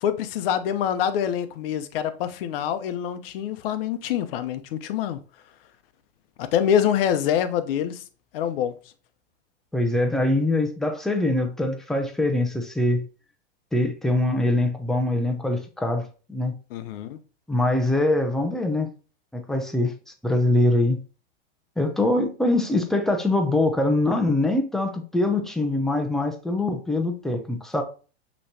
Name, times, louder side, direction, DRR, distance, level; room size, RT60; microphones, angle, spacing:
voice 1, 0.0-5.2 6.4-8.0 8.3-8.7 16.7-17.2, left 9 dB, 60° left, 0.7 m, -25 dB
voice 2, 9.7-13.1 13.7-16.6 17.5-18.9 19.3-19.9 20.2-21.0 21.8-27.8, left 2 dB, ahead, 0.5 m, -23 dB
6.3 x 3.1 x 2.7 m
hypercardioid pair, 130°, 32 cm